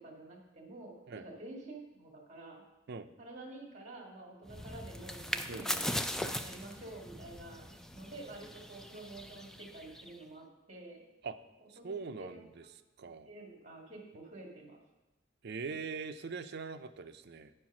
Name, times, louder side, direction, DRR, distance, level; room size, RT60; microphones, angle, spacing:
voice 1, 0.0-2.6 3.2-5.9 6.4-7.7 7.9-11.0 11.6-12.7 13.0-14.8, right 2 dB, 35° right, 0 dB, 1.8 m, -49 dB
sound 1, 4.5-10.2, equal, 5° left, 0.3 m, -40 dB
voice 2, 11.8-12.5 13.0-13.3 15.4-17.5, right 4 dB, 60° right, 9 dB, 0.5 m, -41 dB
9.5 x 4.5 x 6.0 m, 1.0 s
head